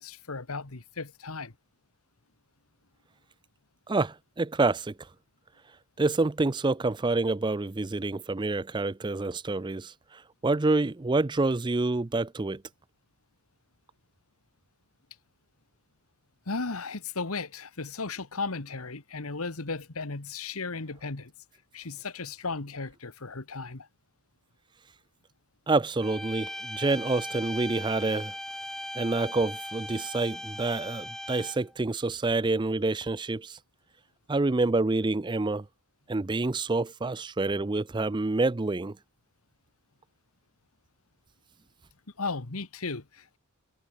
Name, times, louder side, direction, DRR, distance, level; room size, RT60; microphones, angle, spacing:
voice 1, 0.0-1.5 16.5-21.3 21.7-23.9 42.2-43.4, left 4 dB, 80° left, 1.6 m, -35 dB
voice 2, 3.9-4.9 6.0-12.6 25.7-28.3 29.0-33.6 34.3-35.6 36.1-39.0, right 3 dB, 20° right, 0.4 m, -27 dB
sound 1, 26.0-31.7, left 1 dB, ahead, 0.9 m, -39 dB
head